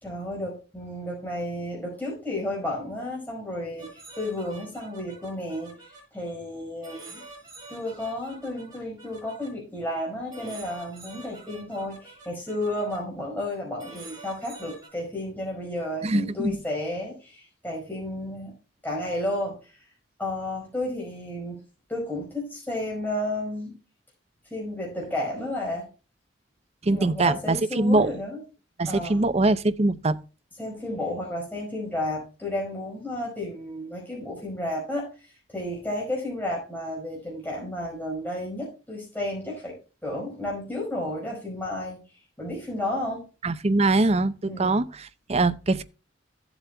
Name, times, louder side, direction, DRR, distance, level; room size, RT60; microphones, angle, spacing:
voice 1, 0.0-7.2 7.7-18.5 18.8-19.6 20.2-21.6 21.9-23.7 24.5-25.8 26.9-28.4 28.9-29.2 30.6-35.1 35.5-39.8 40.0-42.0 42.4-43.2 44.5-44.8, left 1 dB, 10° left, 4.8 m, -32 dB
sound 1, 3.8-6.0 6.8-9.5 10.3-13.0 13.8-14.9, right 3 dB, 20° right, 6.1 m, -46 dB
voice 2, 16.0-16.5 26.8-28.1 28.8-30.2 43.4-45.8, right 2 dB, 35° right, 0.6 m, -23 dB
15.5 x 8.0 x 2.2 m
head